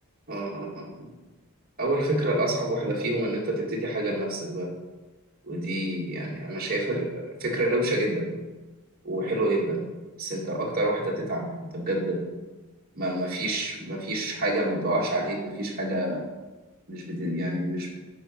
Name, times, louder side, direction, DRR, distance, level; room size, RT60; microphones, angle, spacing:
voice 1, 0.3-1.1 1.8-4.7 5.4-8.3 9.0-9.9 10.2-12.2 13.0-16.2 16.9-18.0, right 1 dB, 45° right, -3 dB, 1.9 m, -28 dB
7.9 x 5.4 x 5.5 m, 1.2 s
head